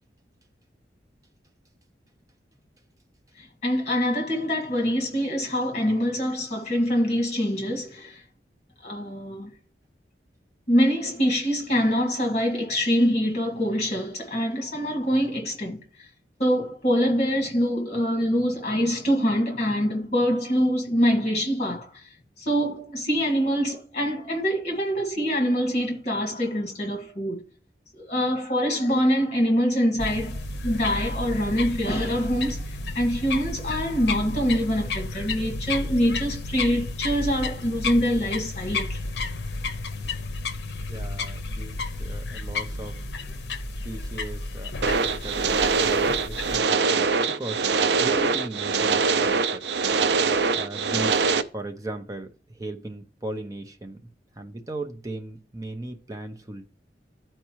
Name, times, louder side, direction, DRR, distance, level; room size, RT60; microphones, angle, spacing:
voice 1, 3.4-8.2 8.8-9.5 10.7-16.1 16.4-22.0 22.4-27.4 28.0-30.4 30.6-39.0, equal, 40° left, 2.0 m, -25 dB
sound 1, 30.0-46.6, left 3 dB, 70° left, 0.7 m, -32 dB
voice 2, 40.9-43.0 43.8-47.7 48.0-49.6 50.5-52.3 52.5-54.0 54.4-56.7, right 2 dB, 20° right, 0.7 m, -37 dB
sound 2, 44.8-51.4, right 4 dB, 75° right, 0.5 m, -23 dB
13.0 x 4.5 x 3.1 m
head